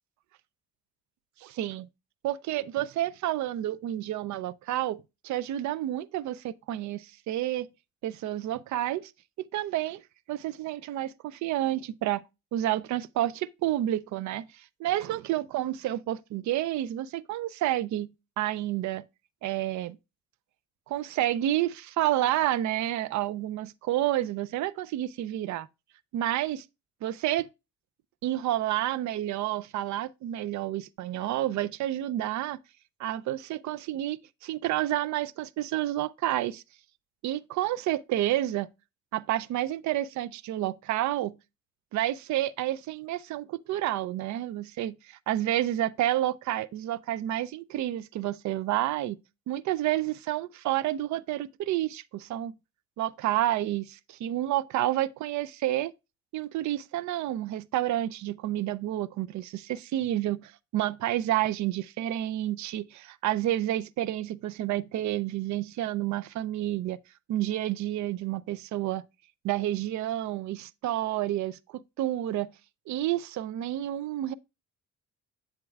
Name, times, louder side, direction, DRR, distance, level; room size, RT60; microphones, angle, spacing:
voice 1, 1.4-1.9 2.2-7.7 8.0-9.1 9.4-10.0 10.3-12.2 12.5-18.1 18.4-19.0 19.4-20.0 20.9-25.7 26.1-26.6 27.0-27.5 28.2-32.6 33.0-36.6 37.2-38.7 39.1-41.3 41.9-49.2 49.5-52.5 53.0-55.9 56.3-67.0 67.3-69.0 69.4-72.5 72.9-74.3, right 13 dB, 70° right, 0.5 m, -30 dB
7.7 x 7.4 x 2.3 m
cardioid pair, 90°, 30 cm